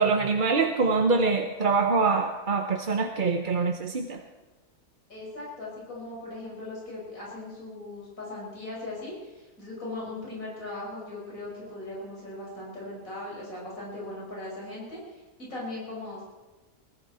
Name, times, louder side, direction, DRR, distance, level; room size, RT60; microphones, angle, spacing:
voice 1, 0.0-4.2, right 4 dB, 40° right, 4 dB, 0.9 m, -24 dB
voice 2, 5.1-16.2, left 2 dB, 60° left, -5 dB, 6.1 m, -39 dB
21.5 x 14.5 x 4.3 m, 1.2 s
omnidirectional pair, 1.6 m